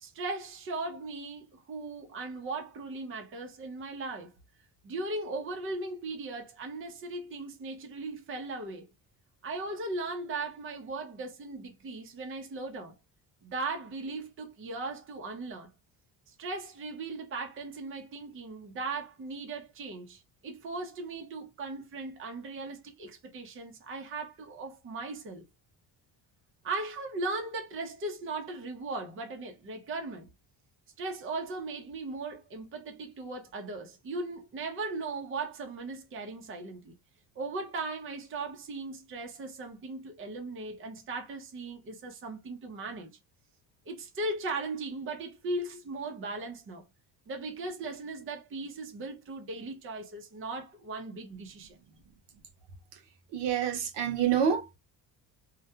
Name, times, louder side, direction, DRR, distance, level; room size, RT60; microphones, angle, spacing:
voice 1, 0.0-4.3 4.8-8.8 9.4-12.9 13.4-15.7 16.3-25.4 26.6-30.3 31.0-36.9 37.4-43.1 43.9-46.8 47.3-51.8, right 3 dB, 30° right, 0.6 m, -38 dB
voice 2, 53.3-54.8, right 8 dB, 65° right, 0.7 m, -27 dB
2.4 x 2.1 x 2.7 m
cardioid pair, 135°, 45 cm